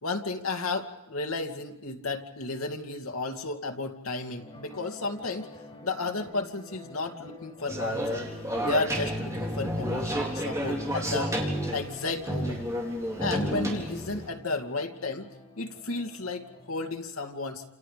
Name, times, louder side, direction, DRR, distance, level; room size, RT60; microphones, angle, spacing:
voice 1, 0.0-5.5 5.8-8.2 8.6-11.3 11.7-12.6 13.2-15.3 15.6-17.6, left 3 dB, 85° left, 3 dB, 2.5 m, -33 dB
sound 1, 4.4-16.9, left 2 dB, 25° left, 5.5 m, -48 dB
sound 2, 7.7-14.3, equal, 15° right, 4.0 m, -31 dB
29.0 x 28.5 x 5.1 m, 0.85 s
head